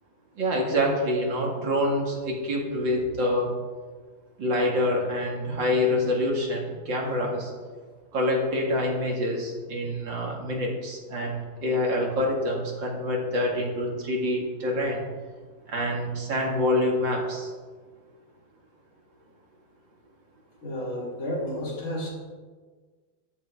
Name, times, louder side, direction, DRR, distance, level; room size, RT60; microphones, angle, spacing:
voice 1, 0.4-3.5 4.4-7.5 8.1-15.0 15.7-17.5, left 1 dB, 60° right, 0 dB, 2.8 m, -26 dB
voice 2, 20.6-22.1, equal, 65° left, -6 dB, 5.6 m, -31 dB
13.5 x 10.5 x 4.8 m, 1.5 s
omnidirectional pair, 2.3 m